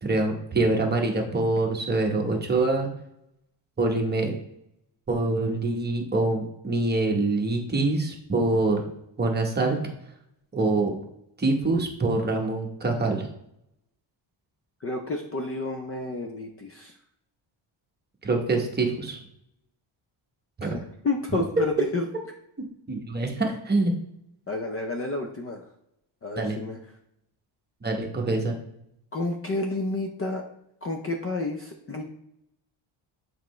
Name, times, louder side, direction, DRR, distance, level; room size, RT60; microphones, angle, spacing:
voice 1, 0.0-2.9 3.8-4.3 5.1-8.9 9.2-9.8 10.5-10.9 11.4-13.3 18.2-19.2 20.6-20.8 22.9-23.9 26.4-26.6 27.8-28.5, right 2 dB, 20° right, 1 dB, 1.0 m, -25 dB
voice 2, 14.8-17.0 20.6-22.1 24.5-25.7 26.2-26.8 29.1-30.4 30.8-32.0, left 2 dB, 30° left, 2 dB, 0.5 m, -30 dB
7.4 x 4.5 x 3.1 m, 0.79 s
cardioid pair, 155°, 49 cm